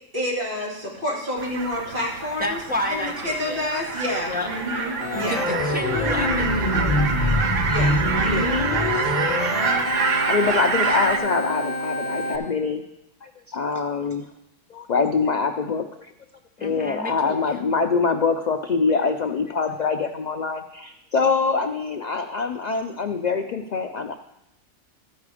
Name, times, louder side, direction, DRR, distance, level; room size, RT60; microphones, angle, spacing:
voice 1, 0.1-2.6 2.9-5.5 7.7-8.6, left 1 dB, 45° right, -5 dB, 2.8 m, -29 dB
sound 1, 1.4-11.2, right 5 dB, 75° right, 1.1 m, -27 dB
voice 2, 2.4-3.7 4.3-4.5 5.2-7.1 16.6-17.6, left 1 dB, 10° right, 1 dB, 0.5 m, -31 dB
Organ, 5.0-12.4, left 1 dB, 35° left, 0.9 m, -25 dB
voice 3, 10.3-12.8 13.2-14.3 14.7-15.8 16.6-24.1, left 4 dB, 75° left, 6 dB, 0.4 m, -24 dB
13.5 x 4.9 x 4.9 m, 0.85 s
omnidirectional pair, 1.3 m